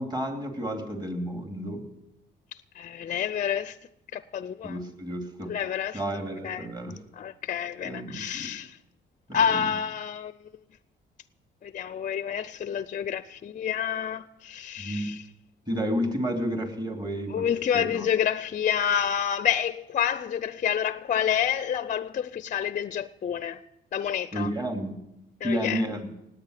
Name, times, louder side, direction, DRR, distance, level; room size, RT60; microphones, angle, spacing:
voice 1, 0.0-1.8 4.6-5.5 5.9-6.9 7.8-8.5 9.3-9.6 14.8-15.2 15.7-17.5 17.7-18.0 24.3-25.0 25.4-26.1, equal, 20° right, 2.9 m, -31 dB
voice 2, 2.7-3.8 4.1-4.8 5.5-6.0 6.4-6.7 7.1-8.8 9.3-10.3 11.6-15.2 17.3-23.6 23.9-24.5 25.4-25.8, left 8 dB, 40° left, 0.5 m, -28 dB
18.0 x 9.0 x 6.6 m
cardioid pair, 90°, 20 cm